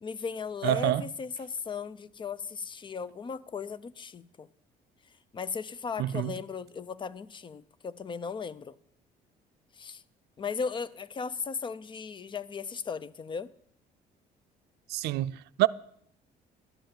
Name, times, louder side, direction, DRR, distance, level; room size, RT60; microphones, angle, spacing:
voice 1, 0.0-4.5 5.3-8.8 9.7-10.0 10.4-13.5, left 6 dB, 30° left, 0.5 m, -36 dB
voice 2, 0.6-1.0 6.0-6.3 14.9-15.7, right 16 dB, 75° right, 0.4 m, -27 dB
12.0 x 5.5 x 8.8 m
cardioid pair, 110°, 17 cm